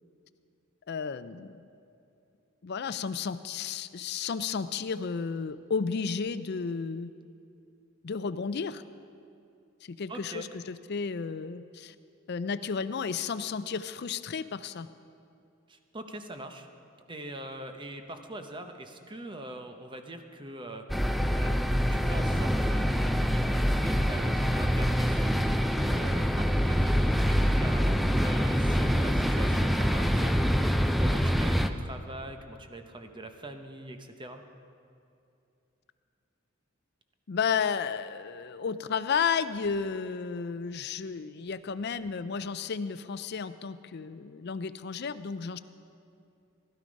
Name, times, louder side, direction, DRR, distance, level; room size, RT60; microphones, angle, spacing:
voice 1, 0.9-1.6 2.6-7.1 8.0-8.8 9.8-11.9 12.3-14.9 37.3-45.6, left 5 dB, 55° left, 12 dB, 0.5 m, -32 dB
voice 2, 10.1-10.5 15.7-16.7 17.1-34.4, right 1 dB, 25° right, 6 dB, 0.8 m, -43 dB
sound 1, 20.9-31.7, equal, ahead, 0.4 m, -25 dB
16.0 x 11.5 x 5.2 m, 2.6 s
head